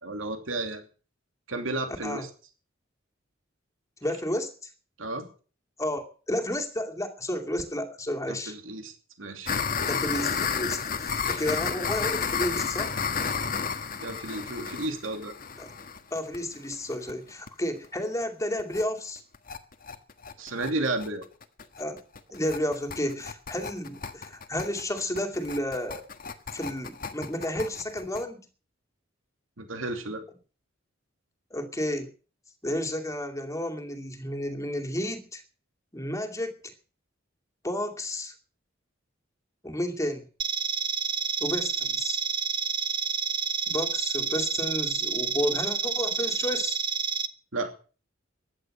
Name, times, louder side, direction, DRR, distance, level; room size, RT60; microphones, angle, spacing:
voice 1, 0.0-0.8 1.5-2.3 5.0-5.3 8.3-8.9 9.2-9.6 11.2-11.4 14.0-15.3 20.4-21.2 29.6-30.2 47.5-47.7, right 2 dB, 80° right, 6 dB, 2.9 m, -32 dB
voice 2, 4.0-4.7 5.8-8.5 9.8-12.9 15.6-15.7 16.1-19.2 21.8-22.0 22.3-26.0 26.5-28.5 31.5-32.1 32.6-35.4 35.9-36.6 37.6-38.3 39.6-40.2 41.4-42.2 43.7-46.8, left 1 dB, 15° left, 4 dB, 2.5 m, -31 dB
sound 1, 9.5-17.1 17.5-17.6 17.8-17.9 18.2-18.3 18.6-18.8 19.2-28.2, left 6 dB, 45° left, 1.5 m, -32 dB
sound 2, 40.4-47.3, right 6 dB, 25° right, 0.7 m, -29 dB
15.5 x 11.0 x 6.6 m, 0.39 s
head